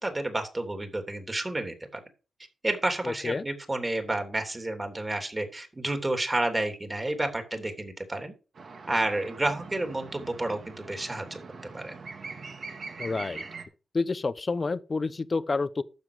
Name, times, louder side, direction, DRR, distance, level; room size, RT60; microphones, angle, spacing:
voice 1, 0.0-2.0 2.6-8.3 8.9-11.4 11.7-11.9, right 2 dB, 20° right, 3.1 m, -30 dB
voice 2, 3.0-3.4 13.0-13.5 13.9-15.8, left 3 dB, 35° left, 0.8 m, -29 dB
sound 1, 8.6-13.6, right 4 dB, 55° right, 2.6 m, -42 dB
12.0 x 7.3 x 5.0 m
cardioid pair, 90°, 0 cm